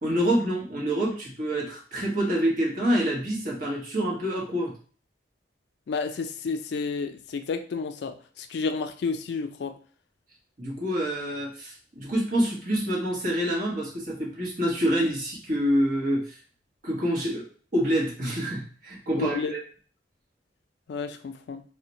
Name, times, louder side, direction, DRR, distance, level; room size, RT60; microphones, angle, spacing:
voice 1, 0.0-4.7 10.6-16.3 16.8-17.5 17.7-19.6, equal, 50° right, -3 dB, 1.0 m, -27 dB
voice 2, 5.9-9.7 19.1-19.5 20.9-21.6, left 4 dB, 65° left, 8 dB, 0.3 m, -31 dB
2.4 x 2.1 x 3.9 m, 0.42 s
head